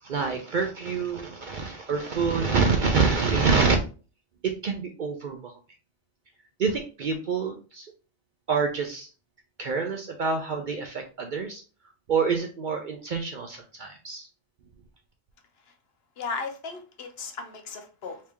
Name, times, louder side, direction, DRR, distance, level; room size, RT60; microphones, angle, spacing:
voice 1, 0.0-3.8 4.4-5.5 6.6-7.9 8.5-9.1 9.6-11.6 12.1-14.3, right 5 dB, 55° right, 3 dB, 0.5 m, -26 dB
voice 2, 16.2-18.2, left 4 dB, 60° left, 5 dB, 0.8 m, -36 dB
3.2 x 2.9 x 3.4 m, 0.35 s
omnidirectional pair, 1.2 m